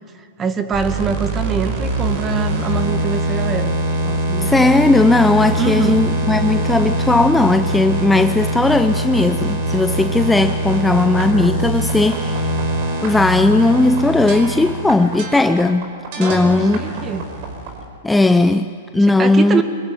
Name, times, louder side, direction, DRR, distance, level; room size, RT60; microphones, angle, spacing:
voice 1, 0.4-3.7 4.0-4.7 5.6-6.0 16.2-17.3 19.2-19.6, right 5 dB, 20° right, 8 dB, 1.9 m, -24 dB
sound 1, 0.7-17.8, right 1 dB, 55° right, 5.3 m, -23 dB
voice 2, 4.4-12.5 13.0-15.9 16.2-16.8 18.0-19.6, left 2 dB, 5° left, 9 dB, 0.7 m, -16 dB
24.0 x 22.0 x 9.7 m, 2.4 s
hypercardioid pair, 125°, 0 cm